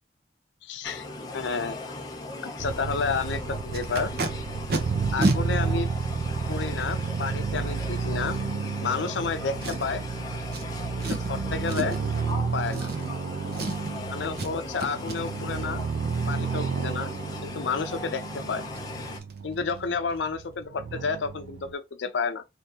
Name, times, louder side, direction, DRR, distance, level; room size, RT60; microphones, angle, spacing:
voice 1, 0.6-1.1 1.3-1.8 2.4-4.1 5.1-5.9 6.5-8.4 8.8-10.0 11.1-12.0 12.5-12.9 14.1-15.8 16.3-17.1 17.4-18.2 18.5-18.6 19.4-22.4, left 5 dB, 85° left, 0.5 m, -30 dB
sound 1, 0.8-19.2, left 2 dB, 20° left, 0.6 m, -38 dB
sound 2, 2.6-21.7, right 5 dB, 80° right, 0.4 m, -32 dB
Packing tape duct tape, 3.7-4.3 4.7-4.8 5.2-5.4 6.2-6.3 9.6-10.0 10.5-10.6 11.0-11.3 11.7-12.1 12.7-13.3 13.5-14.0 14.4-14.5 14.8-15.2 18.2-18.3 18.6-18.8 19.2-19.3 19.6-19.8 20.1-20.2, right 2 dB, 60° right, 0.8 m, -29 dB
3.5 x 2.6 x 2.8 m
head